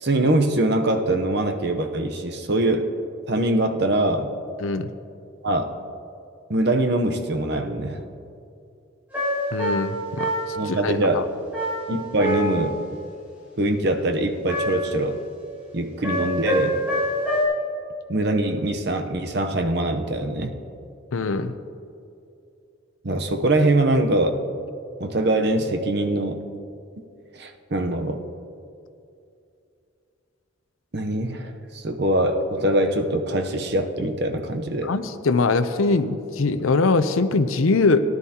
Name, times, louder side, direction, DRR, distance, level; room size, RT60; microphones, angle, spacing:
voice 1, 0.0-2.9 3.3-4.3 5.4-5.7 6.5-8.0 10.6-11.2 11.9-12.8 13.6-15.2 15.7-16.8 18.1-20.5 23.0-24.4 25.0-26.4 27.4-28.2 30.9-34.9, right 1 dB, 55° right, 6 dB, 0.8 m, -23 dB
voice 2, 4.6-4.9 9.5-10.3 10.6-11.2 21.1-21.5 34.8-38.0, left 3 dB, 85° left, 11 dB, 0.6 m, -22 dB
sound 1, 9.1-10.7 11.5-12.8 14.5-15.0 16.0-17.4, equal, 10° right, 3.4 m, -26 dB
18.5 x 11.0 x 2.9 m, 2.5 s
head